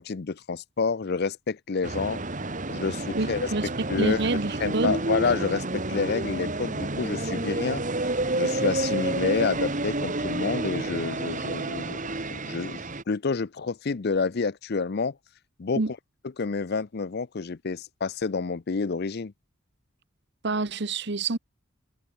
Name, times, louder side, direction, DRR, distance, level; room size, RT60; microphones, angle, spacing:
voice 1, 0.0-2.2 2.7-3.4 3.9-4.2 4.6-7.8 8.3-15.2 15.6-15.8 16.4-19.3, left 4 dB, 50° left, 0.5 m, -29 dB
sound 1, 1.8-13.0, right 2 dB, 40° right, 2.2 m, -30 dB
voice 2, 3.1-3.7 4.0-5.0 15.7-15.9 20.4-21.4, right 3 dB, 55° right, 1.1 m, -27 dB
head